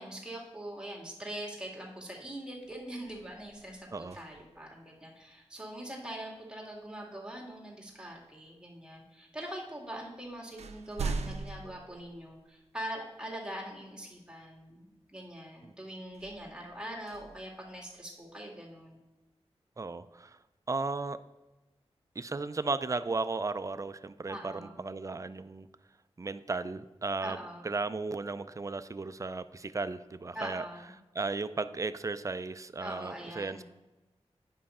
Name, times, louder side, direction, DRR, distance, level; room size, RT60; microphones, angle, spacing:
voice 1, 0.0-19.0 24.3-24.8 27.2-27.7 30.3-30.9 32.8-33.6, right 1 dB, 10° right, -2 dB, 2.1 m, -43 dB
sound 1, 2.0-2.3 2.6-4.7 6.9-7.0 7.8-8.6 9.5-9.6 10.0-12.8 13.4-13.5 16.1-18.2, right 4 dB, 90° right, 0.5 m, -42 dB
voice 2, 19.8-20.4 20.7-21.2 22.2-25.7 26.2-27.4 27.6-30.7 31.2-33.6, right 3 dB, 30° right, 12 dB, 0.4 m, -35 dB
9.5 x 5.5 x 4.2 m, 1.0 s
wide cardioid pair, 60°, 11 cm